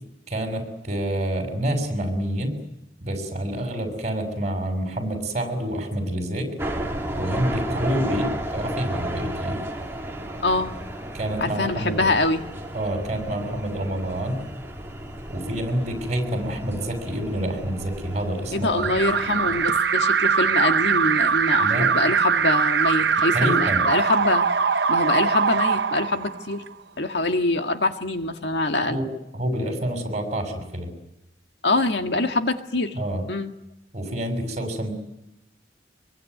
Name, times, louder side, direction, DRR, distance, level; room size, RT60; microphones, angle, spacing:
voice 1, 0.3-2.6 3.0-6.5 7.1-9.6 11.1-12.1 12.7-14.4 15.3-18.8 21.6-21.9 23.3-23.8 28.9-29.1 29.3-30.9 32.9-33.2 33.9-34.9, right 1 dB, 40° right, 5 dB, 6.7 m, -27 dB
sound 1, 6.6-19.7, right 1 dB, 15° right, 3.1 m, -33 dB
voice 2, 10.4-10.8 11.4-12.4 18.5-24.4 24.9-26.6 27.0-29.0 31.6-33.0 33.3-33.5, left 2 dB, 70° left, 6 dB, 1.9 m, -24 dB
Alarm, 18.8-26.7, right 6 dB, 65° right, 0.9 m, -22 dB
25.0 x 23.0 x 9.5 m, 0.90 s
head